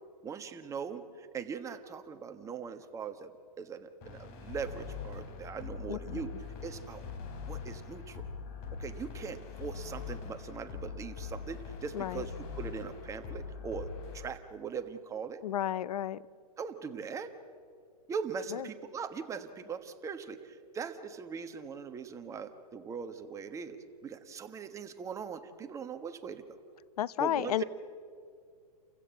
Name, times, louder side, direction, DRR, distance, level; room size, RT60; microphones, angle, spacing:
voice 1, 0.2-3.3 3.6-6.3 6.6-7.0 7.5-8.2 8.8-13.9 14.1-15.4 16.6-17.3 18.1-26.6 27.2-27.6, right 6 dB, 15° right, 8 dB, 1.3 m, -40 dB
sound 1, 4.0-14.2, left 6 dB, 35° left, 3.3 m, -42 dB
voice 2, 5.9-6.2 11.9-12.3 15.4-16.2 18.5-18.7 27.0-27.6, left 11 dB, 70° left, 20 dB, 0.6 m, -32 dB
30.0 x 15.5 x 7.7 m, 2.2 s
hypercardioid pair, 140°, 21 cm